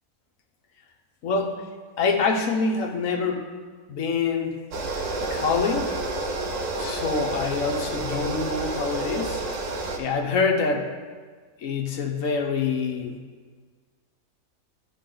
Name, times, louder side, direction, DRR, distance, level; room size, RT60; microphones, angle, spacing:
voice 1, 1.2-1.7 2.0-3.5 3.9-4.6 5.2-5.9 6.8-9.4 10.0-10.9 11.6-13.2, left 4 dB, 65° left, 4 dB, 1.2 m, -25 dB
sound 1, 4.7-10.0, right 2 dB, 85° right, 1.4 m, -30 dB
12.5 x 5.6 x 3.8 m, 1.5 s
omnidirectional pair, 1.6 m